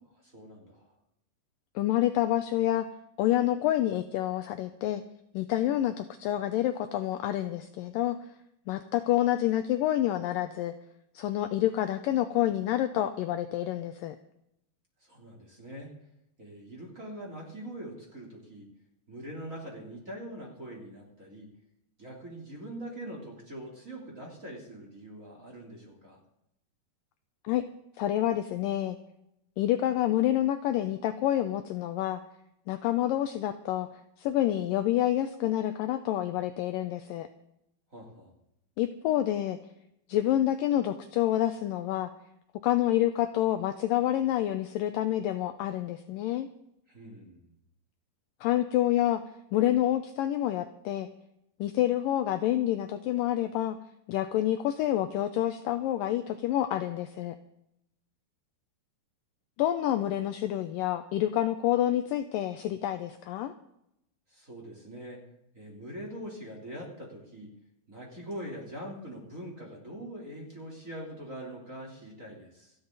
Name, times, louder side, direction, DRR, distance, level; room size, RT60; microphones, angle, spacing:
voice 1, 0.2-0.9 15.0-15.9 16.4-18.7 19.1-21.5 22.0-26.2 37.9-38.3 46.9-47.5 64.3-65.3 65.5-67.5 67.9-72.7, right 1 dB, 20° right, -2 dB, 3.3 m, -43 dB
voice 2, 1.8-2.9 3.2-5.0 5.3-8.2 8.7-10.7 11.2-14.2 27.4-27.6 28.0-29.0 29.6-32.2 32.7-33.9 34.2-37.3 38.8-39.6 40.1-42.1 42.6-46.5 48.4-49.2 49.5-51.1 51.6-53.8 54.1-57.4 59.6-63.5, left 13 dB, 85° left, 9 dB, 1.9 m, -28 dB
28.0 x 9.6 x 4.0 m, 0.81 s
omnidirectional pair, 4.7 m